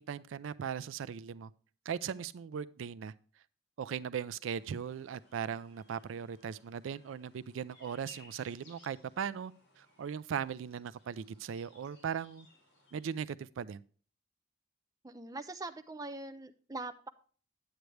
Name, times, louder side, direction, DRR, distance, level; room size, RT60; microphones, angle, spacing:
voice 1, 0.0-1.5 1.9-3.1 3.8-12.5 12.9-13.8, right 7 dB, 85° right, 0.4 m, -38 dB
sound 1, 4.5-13.0, left 3 dB, 60° left, 4.0 m, -62 dB
voice 2, 15.0-17.1, right 2 dB, 20° right, 0.4 m, -42 dB
9.0 x 8.1 x 3.2 m
head